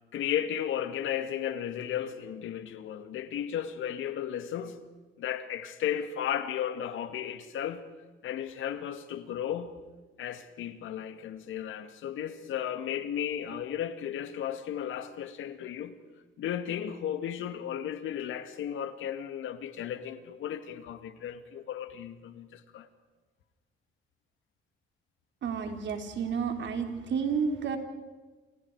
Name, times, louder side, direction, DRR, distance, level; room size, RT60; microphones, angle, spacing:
voice 1, 0.1-4.8 5.2-7.9 8.2-9.8 10.2-15.9 16.4-22.9, left 9 dB, 80° left, 2.1 m, -34 dB
voice 2, 25.4-27.8, right 6 dB, 65° right, 3.7 m, -31 dB
29.0 x 28.0 x 4.9 m
cardioid pair, 90°, 20 cm